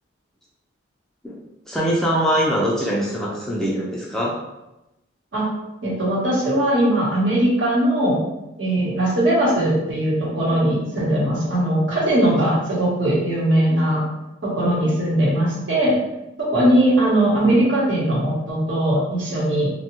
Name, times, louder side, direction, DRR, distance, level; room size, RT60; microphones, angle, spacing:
voice 1, 1.7-4.3, equal, 5° left, -5 dB, 0.3 m, -22 dB
voice 2, 5.8-8.2 8.6-14.0 14.5-15.9 16.4-19.7, right 1 dB, 70° right, -5 dB, 1.0 m, -19 dB
2.7 x 2.2 x 2.9 m, 0.95 s
head